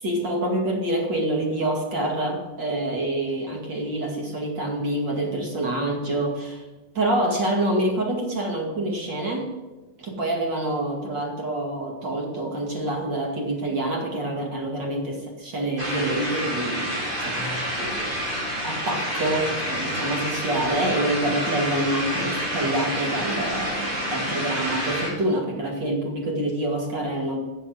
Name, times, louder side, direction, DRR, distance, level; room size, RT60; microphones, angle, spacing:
voice 1, 0.0-6.6 6.9-9.5 10.0-18.3 18.6-27.4, right 1 dB, 40° right, 0 dB, 1.5 m, -27 dB
sound 1, 15.8-25.1, equal, 10° right, 3.8 m, -28 dB
16.5 x 7.7 x 7.7 m, 1.1 s
omnidirectional pair, 5.6 m